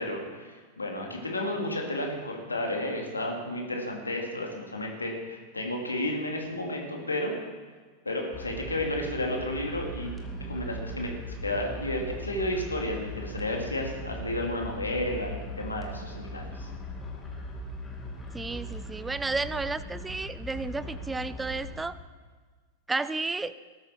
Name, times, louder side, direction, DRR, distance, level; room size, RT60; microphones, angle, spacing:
voice 1, 0.0-7.3 8.0-10.1 10.5-16.7, left 1 dB, 80° left, 1 dB, 2.7 m, -32 dB
sound 1, 8.3-21.8, right 1 dB, 15° left, 2.4 m, -39 dB
voice 2, 18.3-22.0 22.9-23.5, right 3 dB, 10° right, 16 dB, 0.5 m, -32 dB
19.0 x 12.5 x 4.5 m, 1.5 s
figure-of-eight pair, 90°, 0 cm